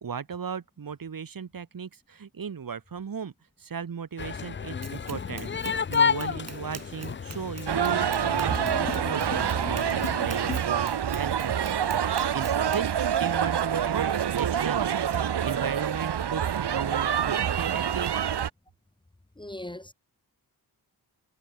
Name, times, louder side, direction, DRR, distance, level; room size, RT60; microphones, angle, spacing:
voice 1, 0.0-3.3 3.6-12.9 13.2-18.1, right 6 dB, 55° right, 1.7 m, -36 dB
sound 1, 4.2-10.6, left 6 dB, 30° left, 0.5 m, -31 dB
Run, 4.8-12.9, right 4 dB, 40° right, 2.7 m, -45 dB
sound 2, 7.7-18.5, right 9 dB, 85° right, 1.5 m, -27 dB
voice 2, 19.4-19.9, left 1 dB, 10° left, 1.1 m, -39 dB
wide cardioid pair, 90°, 39 cm